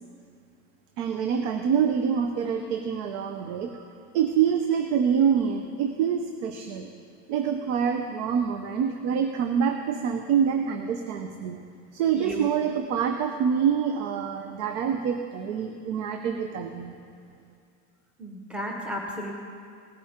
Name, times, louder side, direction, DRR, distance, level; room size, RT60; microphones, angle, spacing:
voice 1, 1.0-6.9 7.3-11.6 11.9-16.9, right 7 dB, 70° right, 6 dB, 0.9 m, -26 dB
voice 2, 12.1-12.5 18.2-19.3, equal, 5° right, -1 dB, 1.1 m, -34 dB
18.0 x 8.5 x 3.7 m, 2.4 s
supercardioid pair, 145°, 36 cm